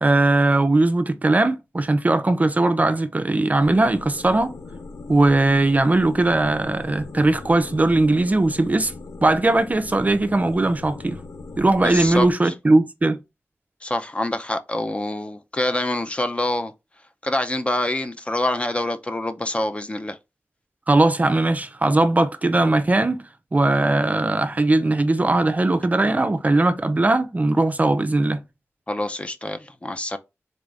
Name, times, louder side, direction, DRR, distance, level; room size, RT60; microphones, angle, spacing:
voice 1, 0.0-4.5 5.1-8.9 9.2-11.2 11.6-13.2 20.9-23.2 23.5-28.4, right 2 dB, 30° right, 0.4 m, -19 dB
sound 1, 3.6-12.3, left 3 dB, 80° left, 0.5 m, -39 dB
voice 2, 11.8-12.5 13.8-16.7 17.2-20.2 28.9-30.2, left 1 dB, 25° left, 0.5 m, -26 dB
3.9 x 2.5 x 3.3 m
wide cardioid pair, 70°, 5 cm